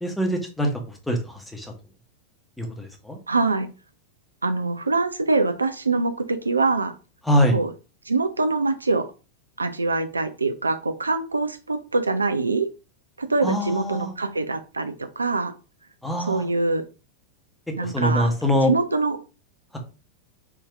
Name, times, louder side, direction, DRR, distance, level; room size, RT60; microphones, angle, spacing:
voice 1, 0.0-0.7 1.1-1.7 2.6-3.2 7.2-7.6 13.4-14.1 16.0-16.5 17.8-18.7, equal, 5° left, 2 dB, 0.9 m, -23 dB
voice 2, 3.3-3.7 4.4-6.9 7.5-7.7 8.1-9.1 9.6-12.7 13.2-15.5 16.2-16.8 17.8-18.3 18.7-19.2, right 3 dB, 80° right, 10 dB, 0.3 m, -24 dB
3.6 x 2.7 x 3.3 m, 0.33 s
figure-of-eight pair, 90°, 0 cm